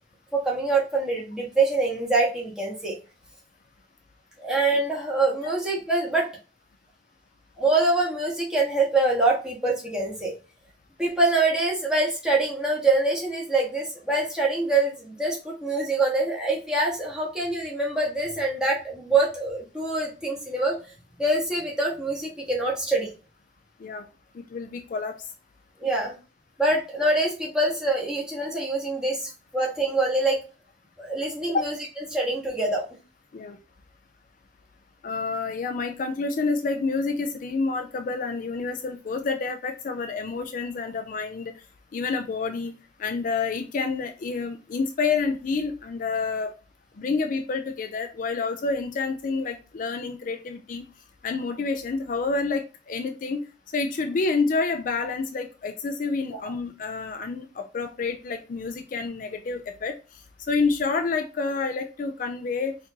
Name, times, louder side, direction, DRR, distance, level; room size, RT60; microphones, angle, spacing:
voice 1, 0.3-2.9 4.4-6.3 7.6-10.3 11.0-20.8 21.2-23.1 25.8-26.1 26.6-30.4 31.0-31.8 32.1-32.8 56.3-56.4, right 2 dB, 5° right, -3 dB, 1.2 m, -25 dB
voice 2, 24.3-25.2 31.5-31.6 33.3-33.6 35.0-41.5 41.9-42.7 43.0-46.5 47.0-50.9 51.2-53.4 53.7-59.9 60.5-62.8, left 4 dB, 50° left, 6 dB, 0.4 m, -28 dB
4.3 x 2.6 x 2.7 m, 0.32 s
head